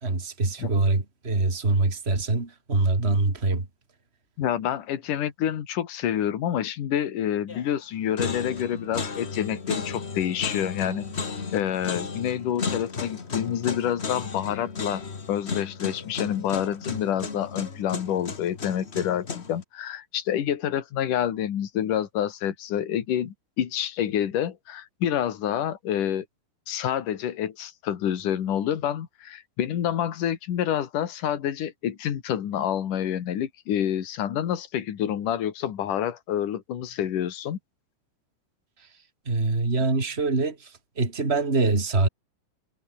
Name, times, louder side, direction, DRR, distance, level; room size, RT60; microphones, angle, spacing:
voice 1, 0.0-3.7 39.3-40.7 41.0-42.1, right 3 dB, 20° right, 3.5 m, -24 dB
voice 2, 4.4-11.1 11.5-26.3 26.7-37.6, left 10 dB, 70° left, 3.6 m, -28 dB
sound 1, 7.5-7.8 8.2-19.6, left 4 dB, 35° left, 1.0 m, -34 dB
omnidirectional pair, 3.8 m